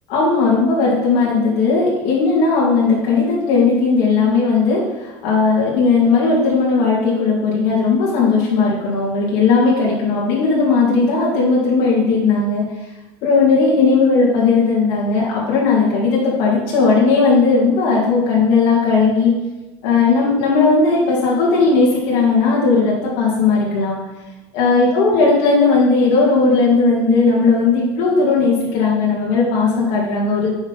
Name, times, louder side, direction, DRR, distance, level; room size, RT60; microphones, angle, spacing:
voice 1, 0.1-12.6 13.2-19.3 19.8-24.0 24.5-30.5, left 4 dB, 70° left, -5 dB, 2.3 m, -16 dB
9.2 x 6.3 x 4.1 m, 1.1 s
supercardioid pair, 120°, 9 cm